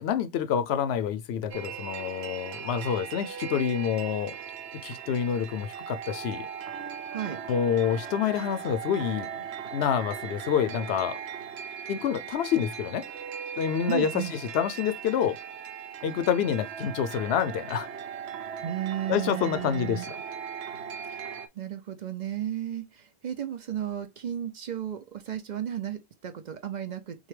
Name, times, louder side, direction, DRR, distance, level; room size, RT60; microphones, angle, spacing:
voice 1, 0.0-4.4 4.8-6.5 7.5-9.5 9.7-11.2 11.9-13.0 13.6-15.4 16.0-17.9 19.1-20.2, left 8 dB, 85° left, 0.8 m, -27 dB
sound 1, 1.5-21.5, right 7 dB, 85° right, 0.9 m, -39 dB
voice 2, 13.9-14.3 18.6-20.0 21.1-21.2 21.6-27.3, right 10 dB, 55° right, 0.6 m, -34 dB
6.3 x 2.2 x 3.2 m
omnidirectional pair, 1.0 m